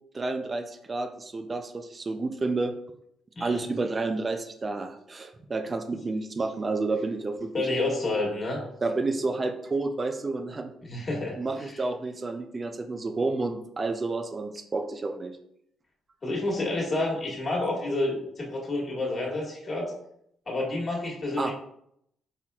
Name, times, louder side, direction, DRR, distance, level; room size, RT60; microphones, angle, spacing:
voice 1, 0.1-2.8 3.4-7.7 8.8-10.7 11.4-15.3 21.4-21.5, right 3 dB, 30° right, 7 dB, 0.4 m, -30 dB
voice 2, 3.3-3.6 7.5-8.6 10.8-11.8 16.2-19.9 20.4-21.5, left 2 dB, 35° left, -2 dB, 1.6 m, -29 dB
4.4 x 4.2 x 2.3 m, 0.73 s
cardioid pair, 90°, 0 cm